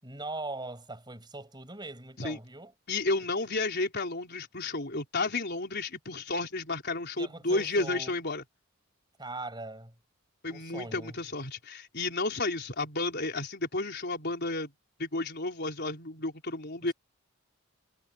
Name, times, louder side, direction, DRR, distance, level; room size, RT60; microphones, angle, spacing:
voice 1, 0.0-2.7 3.2-3.5 7.2-8.2 9.2-9.9 10.5-11.2 16.8-16.9, right 2 dB, 20° right, 8.0 m, -41 dB
voice 2, 2.9-8.4 10.4-14.7 15.0-16.9, left 2 dB, 50° left, 4.4 m, -32 dB
head